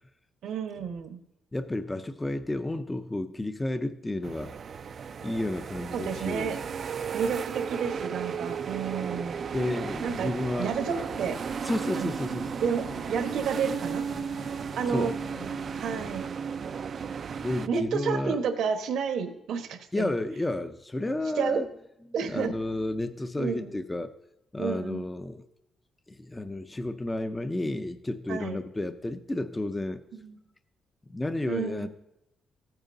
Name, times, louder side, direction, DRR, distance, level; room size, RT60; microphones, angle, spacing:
voice 1, 0.4-1.2 5.9-6.6 7.1-9.4 10.0-10.3 10.6-11.4 11.9-12.1 12.6-12.8 13.1-14.1 14.8-15.1 15.8-16.2 17.7-20.1 21.4-21.6 22.1-22.5 23.4-23.8 24.6-25.0 28.3-28.6 30.1-30.4 31.5-31.9, right 6 dB, 75° right, 7 dB, 1.1 m, -30 dB
voice 2, 1.5-4.5 5.2-6.5 9.5-10.7 11.6-12.5 14.9-15.1 17.4-18.4 19.9-21.7 22.2-24.1 24.5-25.5 26.1-30.0 31.1-31.9, left 1 dB, 15° left, 9 dB, 0.5 m, -31 dB
sound 1, 4.2-17.7, right 6 dB, 45° right, 0.4 m, -35 dB
sound 2, 9.8-16.2, left 6 dB, 85° left, 1.0 m, -47 dB
14.5 x 8.9 x 2.7 m, 0.86 s
cardioid pair, 125°, 0 cm